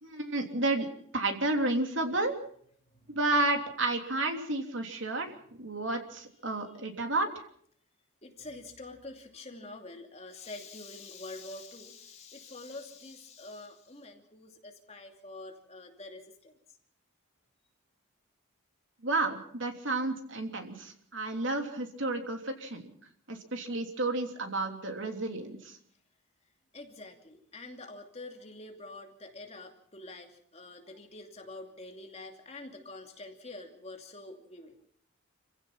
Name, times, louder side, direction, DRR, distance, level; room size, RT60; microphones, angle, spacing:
voice 1, 0.0-2.4 3.1-5.3 5.6-7.3 19.0-22.9 23.3-25.8, right 2 dB, 65° right, 4 dB, 3.2 m, -31 dB
voice 2, 8.2-16.5 26.7-34.7, left 2 dB, 30° left, 3 dB, 2.7 m, -46 dB
28.0 x 16.0 x 5.8 m, 0.63 s
head